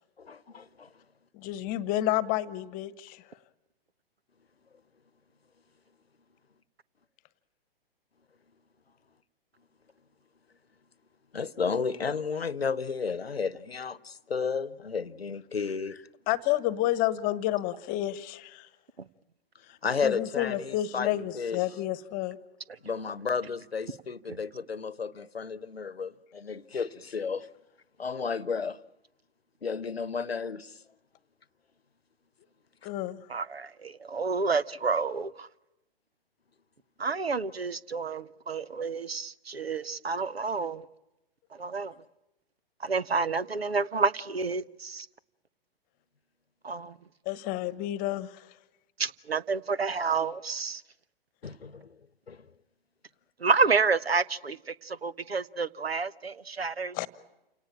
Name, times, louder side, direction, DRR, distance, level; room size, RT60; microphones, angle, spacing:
voice 1, 0.2-0.9 11.3-16.1 19.8-21.6 22.8-27.5 28.0-28.8 29.6-30.8 51.4-52.0 52.3-52.4, left 5 dB, 85° left, 1.0 m, -33 dB
voice 2, 1.3-3.2 16.3-18.7 20.0-22.4 32.8-33.2 47.2-48.5 56.9-57.1, left 14 dB, 30° left, 1.2 m, -30 dB
voice 3, 33.3-35.5 37.0-40.8 41.6-41.9 42.8-45.1 46.6-46.9 49.0-50.8 53.4-57.0, right 4 dB, 85° right, 1.0 m, -29 dB
28.5 x 18.0 x 8.8 m
figure-of-eight pair, 115°, 30 cm